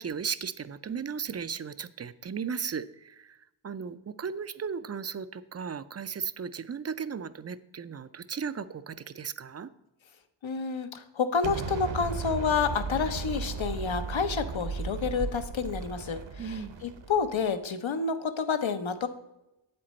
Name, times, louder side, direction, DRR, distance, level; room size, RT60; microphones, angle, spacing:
voice 1, 0.0-3.4 3.6-9.7 16.4-16.8, right 6 dB, 35° right, 14 dB, 0.4 m, -36 dB
voice 2, 10.4-19.1, left 5 dB, 70° left, 9 dB, 0.8 m, -29 dB
Explosion, 11.4-17.4, right 4 dB, 60° right, 0.9 m, -36 dB
8.2 x 7.7 x 4.2 m, 0.94 s
wide cardioid pair, 60°, 48 cm